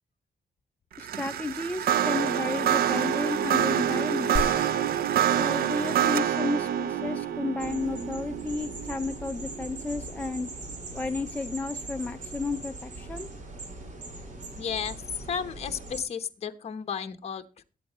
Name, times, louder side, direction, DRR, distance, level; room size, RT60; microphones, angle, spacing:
voice 1, 1.0-4.4 5.4-10.5 10.9-13.3, left 3 dB, 10° left, 5 dB, 0.6 m, -32 dB
sound 1, 1.0-10.3, right 10 dB, 85° right, 0.7 m, -27 dB
sound 2, 4.4-6.1 6.6-6.7, left 2 dB, 15° right, 3.5 m, -35 dB
sound 3, 7.6-16.0, right 2 dB, 55° right, 5.0 m, -41 dB
voice 2, 14.6-15.0 15.3-17.6, left 7 dB, 45° left, 7 dB, 1.1 m, -33 dB
22.5 x 8.9 x 3.0 m, 0.33 s
wide cardioid pair, 155°, 15 cm